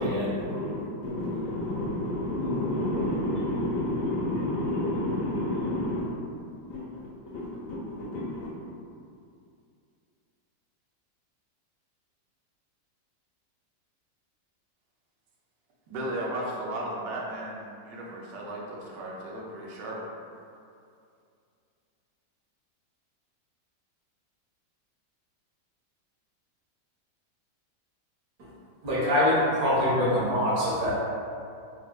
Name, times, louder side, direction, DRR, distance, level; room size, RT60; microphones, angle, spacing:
voice 1, 0.3-6.0 6.7-6.8 7.7-8.5, left 1 dB, 70° left, -7 dB, 0.8 m, -30 dB
voice 2, 15.9-20.0, right 1 dB, 90° right, -3 dB, 1.3 m, -35 dB
voice 3, 28.8-30.9, left 1 dB, 65° right, -7 dB, 1.3 m, -24 dB
4.0 x 2.5 x 2.3 m, 2.4 s
omnidirectional pair, 1.8 m